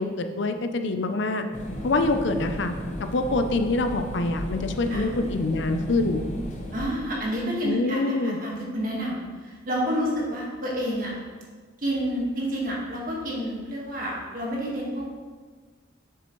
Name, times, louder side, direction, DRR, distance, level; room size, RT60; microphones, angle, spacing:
voice 1, 0.0-1.5 1.8-2.7 3.0-6.2 7.6-8.4, left 2 dB, 70° left, 7 dB, 0.5 m, -25 dB
sound 1, 1.5-6.8, left 1 dB, 40° left, 0.9 m, -35 dB
voice 2, 6.7-11.1 11.8-15.1, equal, 45° right, -3 dB, 1.6 m, -29 dB
7.6 x 6.9 x 3.1 m, 1.5 s
head